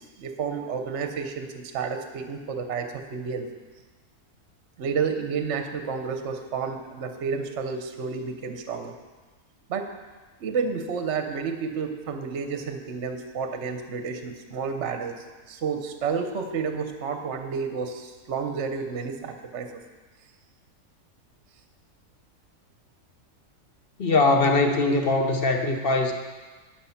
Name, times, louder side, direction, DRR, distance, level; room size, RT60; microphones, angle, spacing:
voice 1, 0.0-3.5 4.8-8.9 9.7-9.9 10.4-19.7, right 5 dB, 55° right, 6 dB, 1.0 m, -30 dB
voice 2, 24.0-26.1, left 3 dB, 45° left, 4 dB, 0.8 m, -21 dB
11.0 x 6.1 x 5.7 m, 1.3 s
omnidirectional pair, 1.7 m